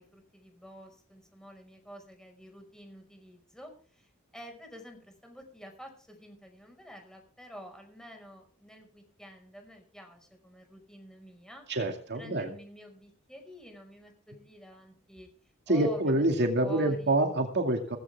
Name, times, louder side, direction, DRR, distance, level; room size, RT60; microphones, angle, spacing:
voice 1, 0.0-11.7 12.1-15.3 15.7-17.2, equal, 5° left, 3 dB, 5.5 m, -49 dB
voice 2, 11.7-12.5 15.7-18.0, right 1 dB, 55° right, 4 dB, 2.4 m, -26 dB
17.0 x 16.0 x 3.6 m, 0.42 s
head